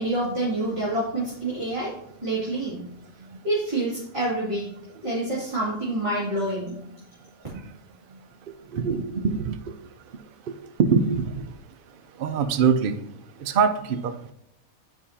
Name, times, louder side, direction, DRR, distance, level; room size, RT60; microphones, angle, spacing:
voice 1, 0.0-1.9 2.2-2.9 3.4-4.7 5.0-6.7, right 1 dB, 20° right, 2.2 m, -27 dB
voice 2, 8.7-9.6 10.5-11.3 12.2-13.0 13.4-14.3, right 6 dB, 55° right, 0.7 m, -23 dB
11.5 x 4.9 x 2.8 m
omnidirectional pair, 1.4 m